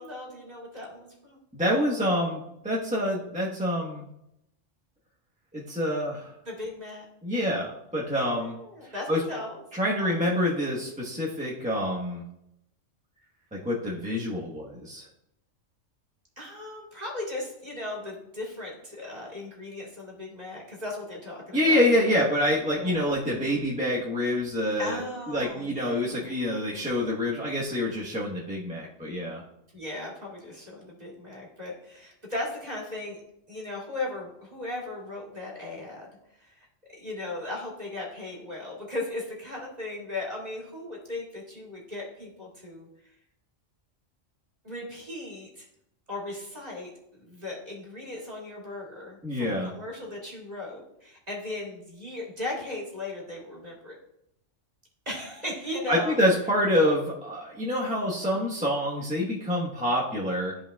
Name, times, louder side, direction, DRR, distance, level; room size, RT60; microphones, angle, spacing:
voice 1, 0.0-1.4 6.5-7.0 8.1-9.6 10.0-10.1 16.4-22.2 22.8-23.0 24.8-26.3 29.7-33.2 33.5-36.1 36.4-36.7 37.0-42.9 44.6-45.7 46.1-54.0 55.1-56.2, left 2 dB, 30° right, -4 dB, 2.3 m, -37 dB
voice 2, 1.5-4.0 5.5-6.3 7.2-8.6 9.1-9.2 9.7-12.2 13.5-15.1 21.5-25.0 25.3-29.4 49.2-49.7 55.9-60.6, left 1 dB, 5° right, -5 dB, 1.0 m, -26 dB
13.5 x 5.1 x 2.3 m, 0.80 s
omnidirectional pair, 1.3 m